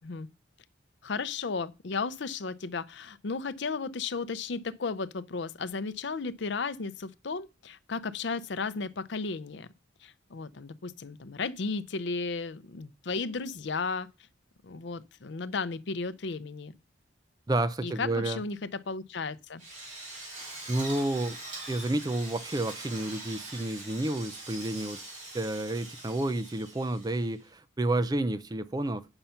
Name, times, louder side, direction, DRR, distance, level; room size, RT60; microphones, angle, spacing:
voice 1, 1.0-9.7 10.0-14.1 14.6-16.7 17.8-19.6, left 4 dB, 60° left, 0.6 m, -34 dB
voice 2, 17.5-18.4 20.7-21.4 21.7-25.0 25.3-29.1, right 2 dB, 20° right, 0.4 m, -30 dB
Drill, 19.6-27.4, right 2 dB, 35° right, 3.9 m, -43 dB
8.8 x 5.6 x 5.7 m
head